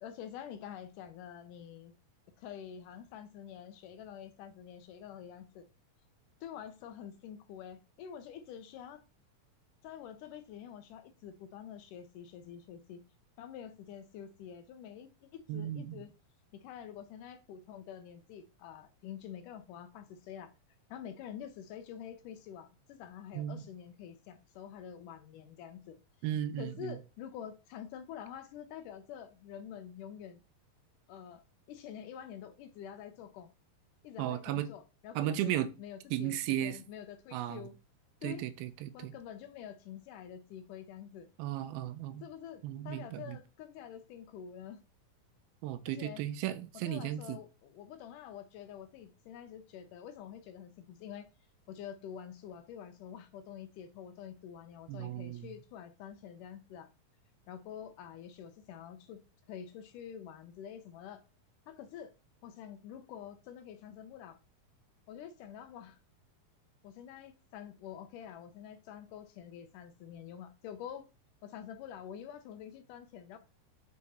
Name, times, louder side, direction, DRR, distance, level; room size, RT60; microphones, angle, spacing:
voice 1, 0.0-1.9 2.4-5.7 6.4-9.0 9.8-13.0 13.4-16.1 16.5-20.5 20.9-26.0 26.6-30.4 31.1-31.4 31.7-33.5 34.0-37.8 38.2-38.4 38.9-41.3 42.2-44.8 45.9-46.2 46.8-51.3 51.7-56.9 57.5-59.2 59.5-61.2 61.7-62.1 62.4-64.4 65.1-66.0 66.8-71.1 71.4-73.4, left 9 dB, 75° left, 2.0 m, -47 dB
voice 2, 15.5-16.0 23.3-23.7 26.2-27.0 34.2-34.7 35.2-35.7 36.1-36.8 37.3-37.6 38.2-39.1 41.4-42.3 42.6-43.4 45.6-47.4 54.9-55.5, right 12 dB, 90° right, 2.5 m, -35 dB
6.0 x 4.8 x 4.1 m
omnidirectional pair, 4.1 m